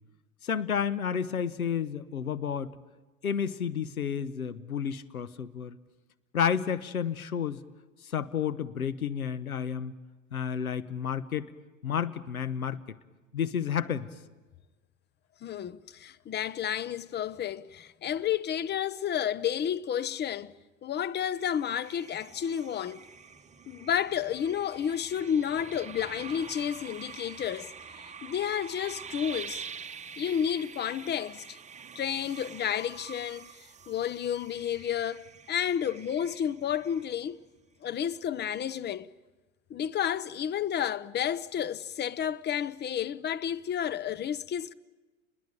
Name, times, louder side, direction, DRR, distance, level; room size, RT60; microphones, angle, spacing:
voice 1, 0.4-2.8 3.2-5.8 6.3-7.6 8.0-10.0 10.3-11.5 11.8-12.8 13.3-14.1, left 8 dB, 90° left, 1.2 m, -31 dB
voice 2, 15.4-20.5 20.8-23.0 23.7-29.6 30.2-31.6 31.9-37.4 37.8-39.1 39.7-44.7, left 9 dB, 25° left, 0.9 m, -31 dB
sound 1, 21.2-37.5, right 6 dB, 15° right, 1.4 m, -46 dB
30.0 x 21.0 x 9.3 m
hypercardioid pair, 90°, 41 cm